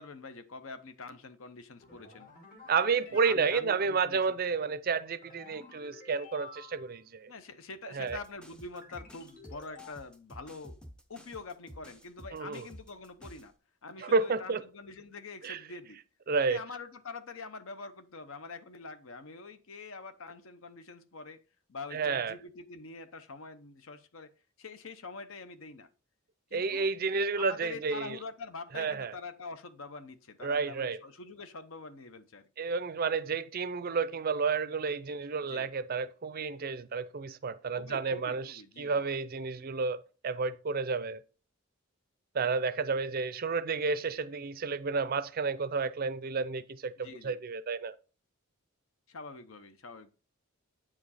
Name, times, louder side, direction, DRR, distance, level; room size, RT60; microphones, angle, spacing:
voice 1, 0.0-2.3 3.1-4.4 7.3-10.8 11.1-13.5 13.8-16.0 16.4-21.4 21.7-24.3 24.6-25.9 26.5-26.9 27.4-32.5 35.4-35.7 37.7-39.1 47.0-47.4 49.1-50.1, left 3 dB, 65° left, 0.8 m, -45 dB
sound 1, 1.8-3.2 5.2-7.0 8.7-9.9, left 3 dB, 40° left, 1.7 m, -51 dB
voice 2, 2.7-7.3 7.9-8.2 12.3-12.7 14.0-14.6 15.4-15.6 16.3-16.6 21.9-22.3 26.5-28.2 28.7-29.2 30.4-31.0 32.6-40.0 40.2-41.2 42.3-46.9 47.2-47.9, right 4 dB, 40° right, 0.4 m, -31 dB
sound 2, 8.1-13.5, equal, 5° left, 0.6 m, -51 dB
8.7 x 5.0 x 4.1 m
head